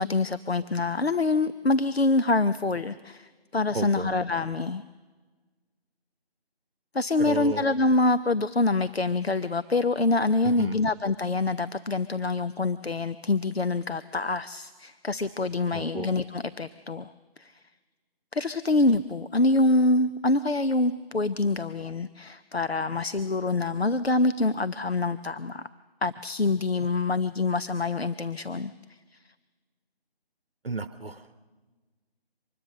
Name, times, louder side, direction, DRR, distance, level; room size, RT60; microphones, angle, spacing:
voice 1, 0.0-4.8 6.9-17.1 17.4-17.6 18.3-25.7 26.0-28.7 29.1-29.2, left 2 dB, 75° left, 12 dB, 0.9 m, -25 dB
voice 2, 3.7-4.2 7.2-7.6 10.4-10.8 15.7-16.1 30.6-31.3, right 3 dB, 65° right, 12 dB, 1.1 m, -33 dB
25.0 x 20.5 x 6.6 m, 1.3 s
figure-of-eight pair, 165°, 31 cm